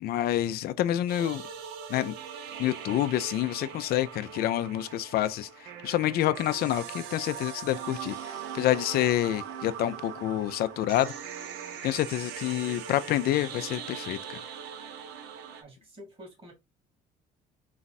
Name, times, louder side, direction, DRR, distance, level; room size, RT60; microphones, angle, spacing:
voice 1, 0.0-1.4 1.9-2.1 2.6-11.1 11.8-14.4, left 13 dB, 65° left, 0.5 m, -28 dB
sound 1, 1.1-15.6, right 8 dB, 90° right, 0.8 m, -41 dB
voice 2, 15.6-16.5, equal, 30° right, 2.6 m, -48 dB
4.1 x 2.4 x 4.1 m
cardioid pair, 110°, 17 cm